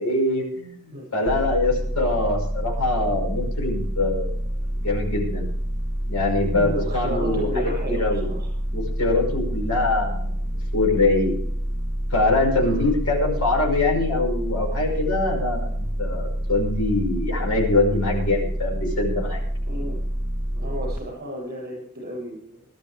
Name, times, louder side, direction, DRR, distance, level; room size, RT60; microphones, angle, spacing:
voice 1, 0.0-4.3 4.8-5.5 6.1-8.3 8.7-10.3 10.7-11.3 12.1-19.4, left 2 dB, 85° left, 0 dB, 5.9 m, -23 dB
sound 1, 1.3-21.0, equal, 10° right, 2.4 m, -27 dB
voice 2, 6.5-8.5 12.6-12.9 19.7-20.0 20.5-22.7, equal, 45° right, -3 dB, 8.0 m, -33 dB
21.0 x 12.5 x 3.5 m, 0.64 s
head